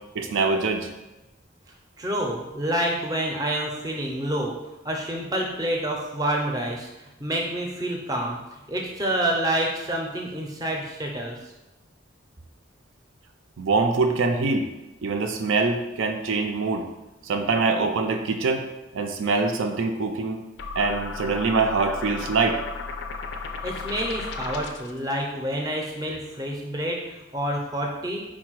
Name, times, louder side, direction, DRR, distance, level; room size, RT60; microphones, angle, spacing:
voice 1, 0.1-0.9 13.6-14.7 15.0-16.9 17.3-18.7 18.9-20.4 20.8-22.6, right 4 dB, 80° right, 5 dB, 0.4 m, -24 dB
voice 2, 2.0-4.6 4.8-6.9 7.2-11.4 23.6-28.2, right 1 dB, 20° right, 0 dB, 0.5 m, -28 dB
sound 1, 20.6-25.0, left 4 dB, 60° left, 0.3 m, -34 dB
4.7 x 2.2 x 4.5 m, 1.0 s
head